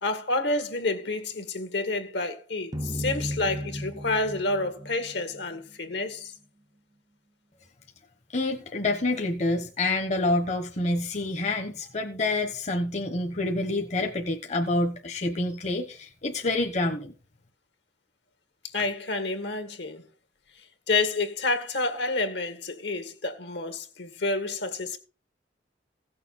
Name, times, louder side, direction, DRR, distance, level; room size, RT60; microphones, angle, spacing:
voice 1, 0.0-6.3 18.7-20.0 20.6-25.0, left 3 dB, 70° left, 1.8 m, -29 dB
sound 1, 2.7-5.9, equal, 20° right, 0.6 m, -35 dB
voice 2, 8.3-17.1, left 2 dB, 40° left, 1.2 m, -27 dB
16.0 x 6.8 x 4.2 m
head